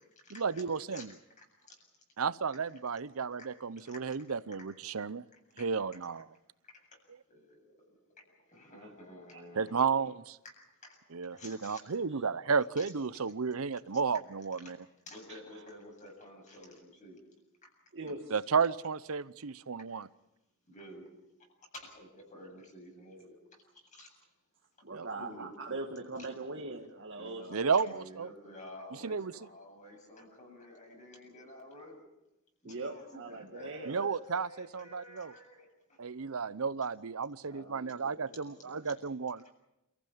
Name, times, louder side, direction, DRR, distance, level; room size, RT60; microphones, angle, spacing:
voice 1, 0.3-1.1 2.2-5.2 5.6-6.2 9.5-10.4 11.1-14.8 18.3-20.1 24.9-25.1 27.5-28.3 29.0-29.3 33.9-35.3 36.0-39.5, right 5 dB, 80° right, 17 dB, 0.8 m, -33 dB
voice 2, 1.4-1.8 3.8-4.2 5.6-5.7 7.3-7.7 8.5-9.8 11.4-11.8 12.8-12.9 15.1-17.2 20.7-21.1 21.7-23.4 23.9-24.1 24.9-25.5 26.2-26.3 27.1-32.0 32.6-35.7 37.5-38.9, left 1 dB, 35° left, 1 dB, 7.8 m, -50 dB
voice 3, 9.3-10.2 12.1-12.2 15.3-15.7 17.9-18.5 24.8-27.8 32.6-34.1, right 2 dB, 60° right, 1 dB, 1.9 m, -42 dB
29.0 x 15.0 x 8.8 m, 0.92 s
head